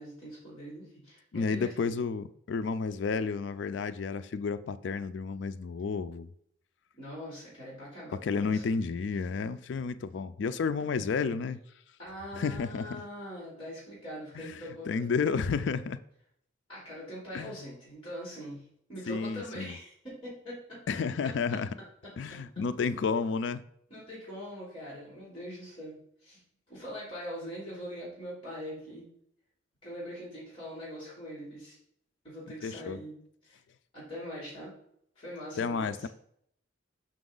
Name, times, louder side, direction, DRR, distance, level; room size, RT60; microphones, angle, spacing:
voice 1, 0.0-1.9 7.0-8.8 12.0-15.1 16.7-20.8 22.0-22.4 23.9-26.4 26.7-29.1 29.8-31.8 32.2-33.2 33.4-33.6 33.9-34.7 35.1-36.1, equal, 30° left, 3.1 m, -43 dB
voice 2, 1.3-6.3 8.1-11.6 12.4-13.0 14.4-14.5 14.9-16.0 17.3-17.5 19.1-19.8 20.9-21.7 22.2-23.6 32.6-33.0 35.6-36.1, left 5 dB, 70° left, 0.4 m, -31 dB
6.2 x 6.0 x 3.8 m
head